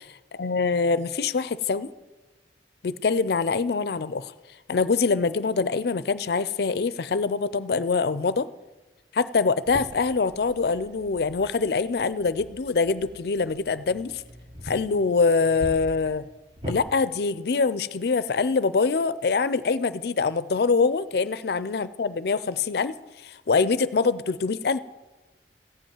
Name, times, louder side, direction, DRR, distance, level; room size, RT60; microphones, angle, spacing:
voice 1, 0.3-1.9 2.8-4.3 4.7-8.5 9.1-14.2 14.6-16.2 16.7-22.9 23.2-24.8, left 4 dB, 60° left, 16 dB, 0.4 m, -24 dB
sound 1, 9.7-16.8, equal, 25° right, 1.3 m, -42 dB
14.5 x 5.4 x 8.8 m, 1.2 s
head